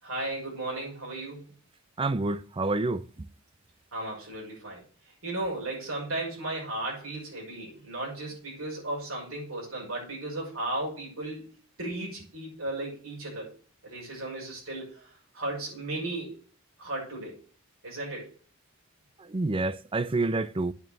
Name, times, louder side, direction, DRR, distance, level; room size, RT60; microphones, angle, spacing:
voice 1, 0.0-1.5 3.9-11.5 11.8-13.5 13.8-16.4 16.8-17.4 17.8-18.3, right 2 dB, 85° right, 6.3 m, -35 dB
voice 2, 2.0-3.0 19.3-20.7, right 2 dB, 25° right, 0.5 m, -28 dB
8.9 x 6.4 x 6.7 m
head